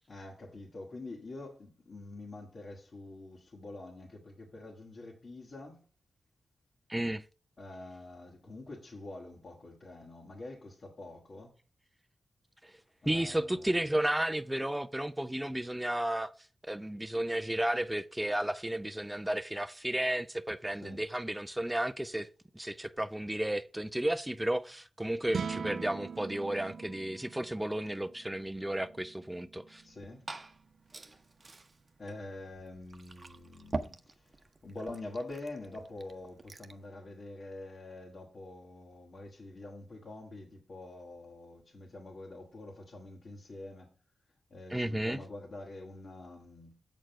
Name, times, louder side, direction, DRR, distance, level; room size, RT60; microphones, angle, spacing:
voice 1, 0.1-5.9 7.6-11.6 13.0-13.9 20.7-21.0 29.8-30.3 31.0-31.2 32.0-43.9 44.5-46.8, left 2 dB, 60° left, 1.8 m, -46 dB
voice 2, 6.9-7.2 12.6-12.7 13.1-16.3 16.7-22.3 22.6-29.8 44.7-45.2, right 1 dB, 10° right, 0.4 m, -33 dB
sound 1, 25.2-31.6, right 6 dB, 75° right, 0.4 m, -43 dB
Liquid, 29.8-36.9, right 3 dB, 45° right, 0.8 m, -45 dB
7.5 x 4.6 x 5.6 m
supercardioid pair, 40°, 0 cm